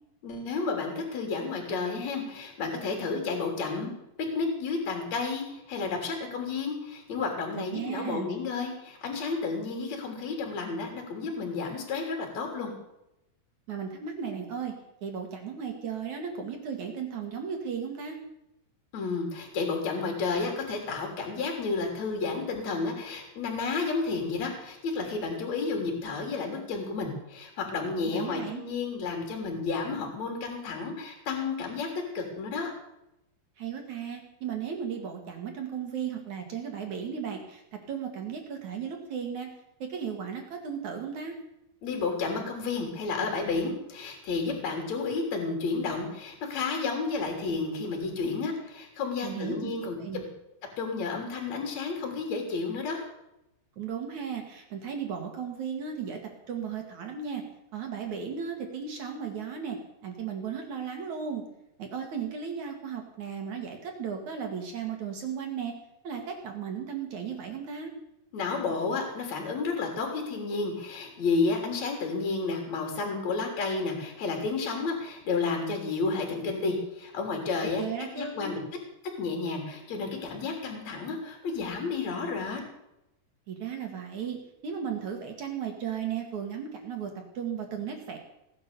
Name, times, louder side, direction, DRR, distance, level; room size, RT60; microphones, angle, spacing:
voice 1, 0.2-3.9 4.4-12.7 18.9-31.9 32.1-32.7 41.8-50.3 50.8-53.0 68.3-77.8 78.2-78.6 79.2-82.6, left 4 dB, 40° left, 2 dB, 4.4 m, -31 dB
voice 2, 7.5-8.3 13.7-14.7 15.0-18.2 28.1-28.6 33.6-37.6 37.9-39.5 39.8-41.4 49.2-49.7 50.0-50.2 53.8-56.2 56.5-57.4 57.7-59.8 60.0-61.4 61.8-65.7 66.0-67.9 77.8-78.5 83.5-84.4 84.6-88.2, right 7 dB, 50° right, 3 dB, 2.9 m, -35 dB
18.0 x 11.0 x 6.9 m, 0.84 s
omnidirectional pair, 5.0 m